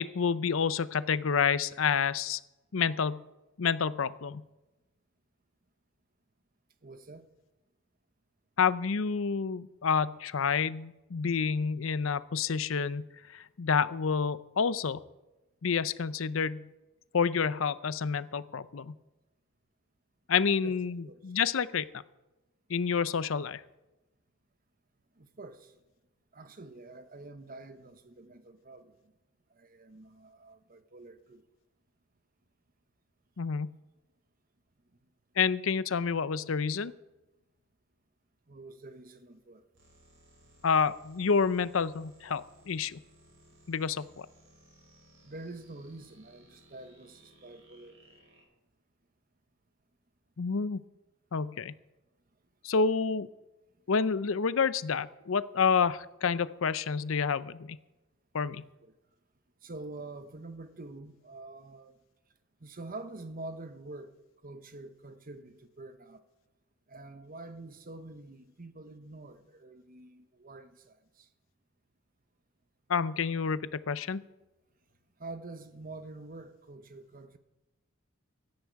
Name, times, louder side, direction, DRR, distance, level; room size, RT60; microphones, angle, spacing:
voice 1, 0.0-2.4 2.7-3.3 3.6-4.4 8.6-13.1 13.3-15.0 15.6-16.7 17.1-18.9 20.3-21.9 22.7-23.6 33.4-33.8 35.4-36.9 40.6-43.0 43.7-44.3 50.4-50.8 51.3-51.7 52.6-53.3 53.9-57.8 58.3-58.6 72.9-74.2, left 6 dB, 75° left, 0.6 m, -29 dB
voice 2, 6.8-7.3 20.6-20.8 21.0-21.2 25.2-25.8 26.3-29.1 29.5-31.4 38.5-39.6 45.2-48.0 58.6-58.9 59.6-62.0 62.6-64.2 64.4-66.2 66.9-71.3 75.2-77.4, right 2 dB, 45° right, 1.2 m, -46 dB
sound 1, 39.7-48.4, right 1 dB, 65° right, 6.4 m, -61 dB
16.5 x 13.0 x 4.7 m
head